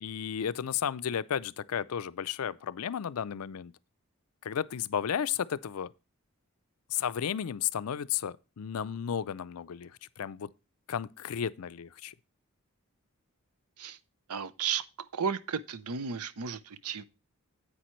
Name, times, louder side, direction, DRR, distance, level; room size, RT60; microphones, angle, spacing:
voice 1, 0.0-3.7 4.4-5.9 6.9-10.5 10.9-12.1, left 8 dB, 75° left, 0.4 m, -33 dB
voice 2, 14.3-14.8 15.1-17.0, right 6 dB, 90° right, 0.7 m, -33 dB
10.0 x 8.5 x 3.1 m
head